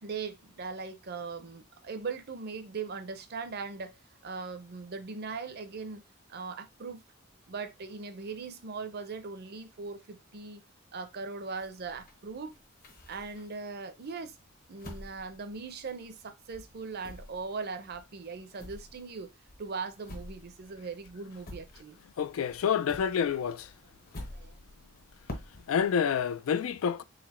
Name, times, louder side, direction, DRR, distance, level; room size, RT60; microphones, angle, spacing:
voice 1, 0.0-6.0 6.3-7.0 7.5-10.6 10.9-12.5 13.1-14.4 14.7-19.3 19.6-22.0 24.2-24.6, right 4 dB, 50° right, 0.6 m, -40 dB
sound 1, 11.6-13.7 14.2-16.3 16.5-22.2 22.5-25.9, left 1 dB, 45° left, 1.0 m, -48 dB
voice 2, 22.2-23.7 25.7-27.0, left 7 dB, 70° left, 0.3 m, -28 dB
4.1 x 2.1 x 4.2 m
head